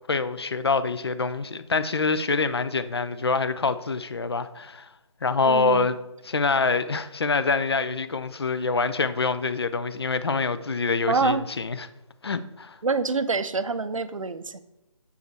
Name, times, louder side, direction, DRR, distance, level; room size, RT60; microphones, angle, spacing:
voice 1, 0.1-4.9 5.2-6.0 6.2-11.9 12.2-12.8, left 4 dB, 50° left, 0.5 m, -25 dB
voice 2, 5.4-5.9 11.1-11.4 12.8-14.6, right 4 dB, 70° right, 0.6 m, -26 dB
6.9 x 4.7 x 4.5 m
figure-of-eight pair, 150°, 17 cm